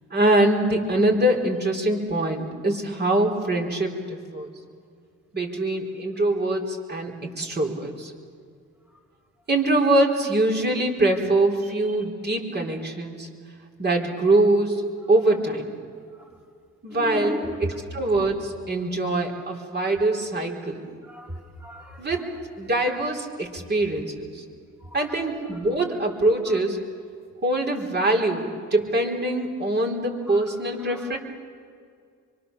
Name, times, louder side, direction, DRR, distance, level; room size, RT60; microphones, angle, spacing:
voice 1, 0.1-4.5 5.3-8.1 9.5-13.3 13.8-14.8 15.1-15.8 16.8-20.8 22.0-22.3 22.6-24.4 24.9-26.8 27.4-31.2, right 2 dB, 35° right, 2 dB, 4.1 m, -23 dB
voice 2, 17.0-17.6 21.1-22.0 24.9-25.1 30.8-30.9, left 1 dB, 5° right, -2 dB, 2.8 m, -35 dB
25.5 x 23.5 x 7.0 m, 2.2 s
cardioid pair, 90°, 30 cm